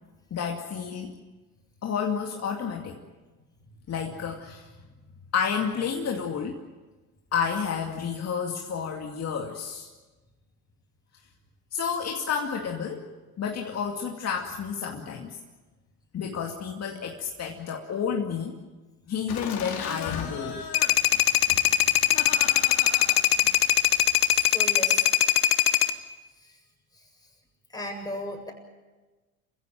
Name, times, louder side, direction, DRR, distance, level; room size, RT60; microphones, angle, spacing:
voice 1, 0.3-1.2 1.8-3.0 3.9-4.7 5.3-6.6 7.3-9.9 11.7-13.1 13.4-15.4 16.1-18.6 19.1-20.7, left 6 dB, 35° left, 1 dB, 2.4 m, -30 dB
Laughter, 19.3-24.4, left 7 dB, 55° left, 3.9 m, -38 dB
sound 1, 20.7-25.9, left 12 dB, 85° left, 1.3 m, -21 dB
voice 2, 24.3-25.0 26.4-26.6 26.9-27.0 27.7-28.5, left 1 dB, 10° left, 2 dB, 7.6 m, -36 dB
28.5 x 15.5 x 9.2 m, 1.2 s
hypercardioid pair, 75°, 44 cm